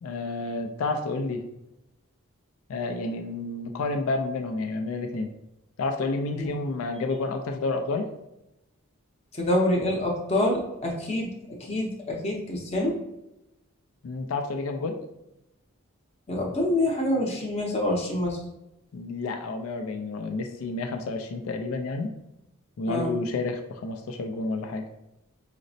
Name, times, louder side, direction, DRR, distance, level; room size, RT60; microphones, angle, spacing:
voice 1, 0.0-1.4 2.7-5.3 5.8-8.1 14.0-14.9 18.9-22.1 22.8-24.8, left 3 dB, 90° left, 5 dB, 0.4 m, -30 dB
voice 2, 9.3-11.3 11.6-13.0 16.3-18.4 22.9-23.1, left 1 dB, 30° left, -2 dB, 0.6 m, -26 dB
5.0 x 2.0 x 2.6 m, 0.88 s
head